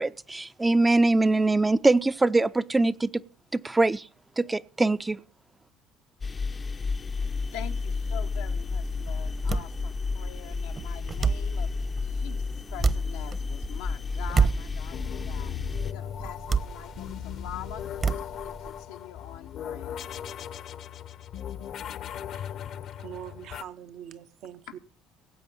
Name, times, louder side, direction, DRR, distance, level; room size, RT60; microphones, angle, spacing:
voice 1, 0.0-3.2 3.5-4.1 4.4-5.2, right 2 dB, 15° right, 0.5 m, -23 dB
sound 1, 6.2-15.9, left 4 dB, 30° left, 0.6 m, -31 dB
voice 2, 7.5-17.8 18.1-20.1, left 10 dB, 85° left, 0.9 m, -44 dB
sound 2, 8.3-18.8, right 5 dB, 40° right, 1.1 m, -31 dB
sound 3, 14.9-23.6, left 10 dB, 60° left, 0.8 m, -38 dB
voice 3, 22.3-22.7 23.0-24.8, right 10 dB, 65° right, 1.0 m, -43 dB
17.5 x 8.1 x 5.5 m
hypercardioid pair, 70°, 0 cm